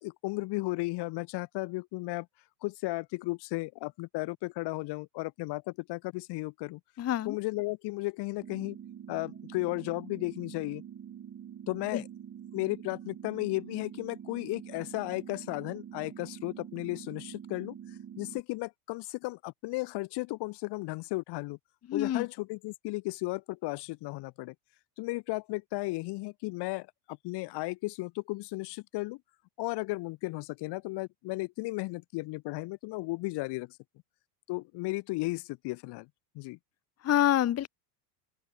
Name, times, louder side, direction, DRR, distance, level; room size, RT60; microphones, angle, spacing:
voice 1, 0.0-2.3 2.6-6.8 7.2-8.8 9.1-10.8 11.7-12.1 12.5-17.7 18.2-21.6 21.9-24.5 25.0-29.2 29.6-33.8 34.5-36.1 36.3-36.6, left 22 dB, 55° left, 1.3 m, -35 dB
voice 2, 7.0-7.4 11.9-12.0 21.9-22.3 37.0-37.7, left 12 dB, 30° left, 1.1 m, -26 dB
sound 1, 8.4-18.4, right 9 dB, 30° right, 2.8 m, -46 dB
open air
supercardioid pair, 100°, 49 cm